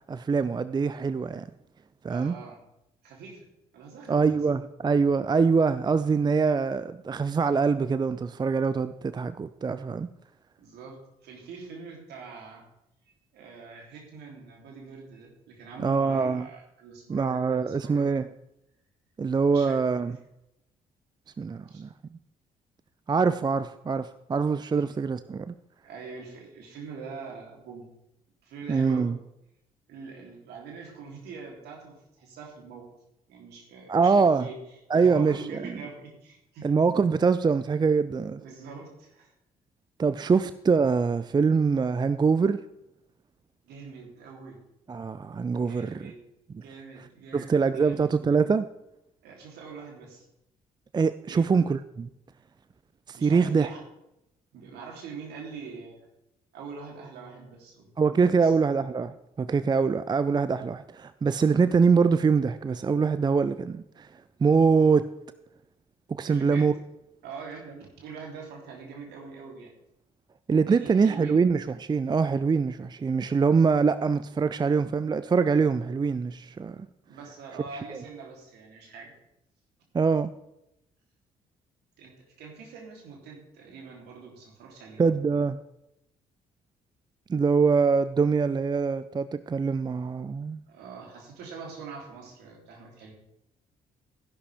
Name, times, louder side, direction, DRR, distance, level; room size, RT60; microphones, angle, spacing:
voice 1, 0.1-1.5 2.0-2.4 4.1-10.1 15.8-16.5 17.1-18.3 19.2-20.2 21.4-21.9 23.1-25.5 28.7-29.2 33.9-34.5 34.9-35.7 36.6-38.4 40.0-42.6 44.9-46.0 46.5-46.6 47.3-48.7 50.9-52.1 53.1-53.7 58.0-64.1 64.4-65.1 66.1-66.7 70.5-76.8 77.9-78.0 79.9-80.3 85.0-85.6 87.3-90.6, right 5 dB, 25° right, 13 dB, 0.5 m, -24 dB
voice 2, 2.1-2.6 3.0-3.5 3.7-4.3 10.6-12.6 13.3-18.3 19.5-19.8 21.7-21.8 24.7-24.8 25.8-27.9 28.4-29.1 29.9-32.8 33.3-34.5 34.9-36.7 38.4-39.3 40.3-40.4 43.6-44.6 45.5-46.2 46.6-48.1 49.2-50.2 51.3-51.4 53.2-53.8 54.5-56.1 56.5-57.9 58.4-58.5 66.3-66.7 67.2-69.7 70.7-71.4 77.0-79.2 82.0-85.0 90.7-93.1, right 5 dB, 65° right, 0 dB, 3.2 m, -44 dB
14.5 x 11.0 x 3.5 m, 0.86 s
figure-of-eight pair, 45°, 18 cm